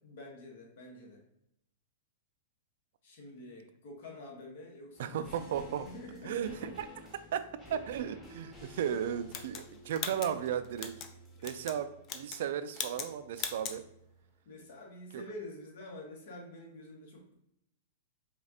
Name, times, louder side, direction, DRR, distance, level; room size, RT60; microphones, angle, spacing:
voice 1, 0.0-1.2 3.0-6.8 7.7-7.8 11.4-11.7 14.4-17.3, left 1 dB, 65° left, 0 dB, 1.3 m, -48 dB
sound 1, 4.9-14.3 14.6-14.7, equal, 10° left, 1.1 m, -54 dB
voice 2, 5.0-5.9 6.2-6.9 7.3-7.4 7.7-10.9 11.4-13.8 15.1-15.2, right 9 dB, 70° right, 11 dB, 0.3 m, -35 dB
sound 2, 9.3-11.1 11.4-11.8 12.0-12.5 12.7-13.1 13.4-13.8, left 7 dB, 35° left, 0.5 m, -39 dB
4.8 x 2.4 x 2.8 m, 0.79 s
hypercardioid pair, 135°, 0 cm